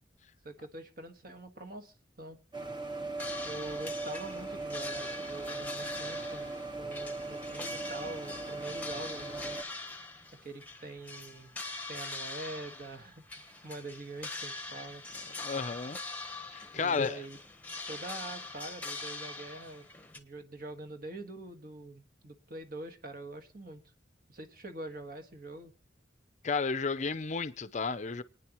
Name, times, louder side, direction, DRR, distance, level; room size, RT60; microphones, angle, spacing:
voice 1, 0.4-2.4 3.4-6.5 6.8-9.6 10.4-11.6 11.9-15.0 16.7-17.4 17.9-19.9 20.1-23.8 24.3-25.7, right 2 dB, 50° right, 1.6 m, -44 dB
sound 1, 2.5-9.6, right 3 dB, 25° right, 1.2 m, -39 dB
sound 2, 3.2-20.2, left 3 dB, 10° left, 1.1 m, -43 dB
voice 2, 15.4-16.0 16.5-17.2 26.4-28.2, left 4 dB, 40° left, 0.5 m, -32 dB
28.0 x 9.5 x 3.0 m
head